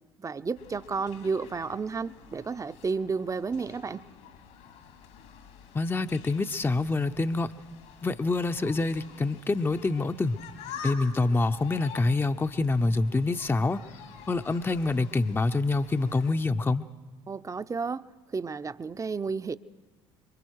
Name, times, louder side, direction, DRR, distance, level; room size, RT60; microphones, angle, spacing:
voice 1, 0.2-4.0 17.3-19.6, right 4 dB, 25° right, 13 dB, 0.7 m, -32 dB
sound 1, 0.5-16.3, left 6 dB, 75° left, 2.5 m, -48 dB
voice 2, 5.7-7.5 8.0-10.4 10.8-13.8 14.3-16.8, left 3 dB, 15° left, 9 dB, 0.6 m, -26 dB
26.0 x 23.5 x 4.7 m, 1.3 s
hypercardioid pair, 60°, 13 cm